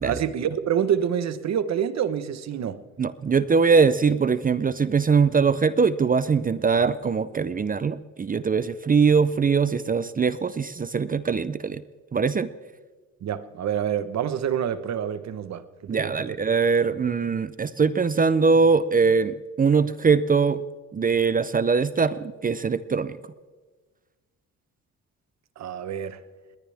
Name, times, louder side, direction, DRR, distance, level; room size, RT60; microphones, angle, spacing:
voice 1, 0.0-2.8 13.2-15.6 15.9-16.1 25.6-26.2, right 9 dB, 60° right, 1.2 m, -27 dB
voice 2, 3.0-11.8 12.1-12.5 15.9-20.6 20.9-23.2, right 5 dB, 30° right, 0.6 m, -22 dB
20.0 x 20.0 x 3.5 m
cardioid pair, 90°, 30 cm